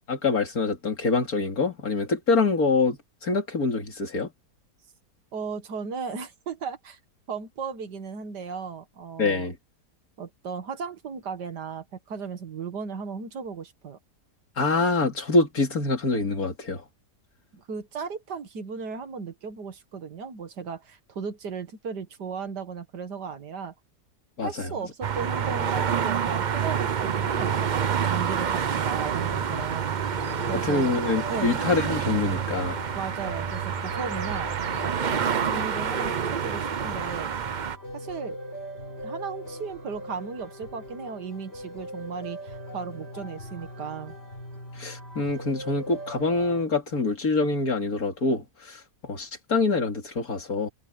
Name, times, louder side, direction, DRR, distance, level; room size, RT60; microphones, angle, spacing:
voice 1, 0.1-4.3 9.2-9.6 14.6-16.8 24.4-24.7 30.5-32.8 44.7-50.7, left 3 dB, 60° left, 3.1 m, -25 dB
voice 2, 5.3-7.0 7.3-9.5 10.2-14.0 17.5-23.7 24.4-29.9 30.5-30.9 31.3-31.6 32.9-34.5 35.1-37.3 37.9-38.4 39.0-44.1, right 5 dB, 80° right, 2.3 m, -36 dB
sound 1, 25.0-37.8, right 7 dB, 60° right, 0.4 m, -28 dB
sound 2, 29.1-46.7, equal, 40° left, 6.8 m, -40 dB
omnidirectional pair, 1.8 m